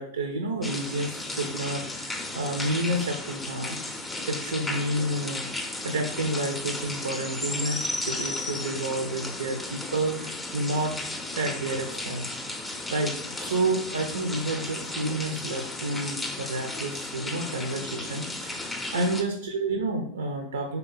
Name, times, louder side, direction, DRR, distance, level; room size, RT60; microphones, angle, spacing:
voice 1, 0.0-10.9 11.3-12.5 12.9-20.8, right 2 dB, 70° right, 4 dB, 0.4 m, -30 dB
sound 1, 0.6-19.2, left 2 dB, 10° left, 0.5 m, -34 dB
3.7 x 2.8 x 3.8 m, 0.69 s
figure-of-eight pair, 90°, 0 cm